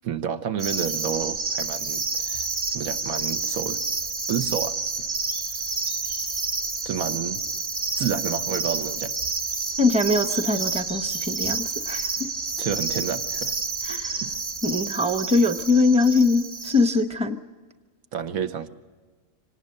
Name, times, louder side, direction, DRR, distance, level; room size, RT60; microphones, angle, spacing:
voice 1, 0.0-3.8 4.3-4.8 6.8-7.4 7.9-9.1 12.6-13.5 14.2-14.3 18.1-18.7, right 8 dB, 80° right, 9 dB, 1.5 m, -30 dB
sound 1, 0.6-17.0, right 4 dB, 55° right, 2.5 m, -29 dB
voice 2, 9.8-12.3 13.8-14.2 14.6-17.4, left 3 dB, 5° right, 8 dB, 0.8 m, -22 dB
25.5 x 19.0 x 6.6 m, 1.4 s
omnidirectional pair, 1.5 m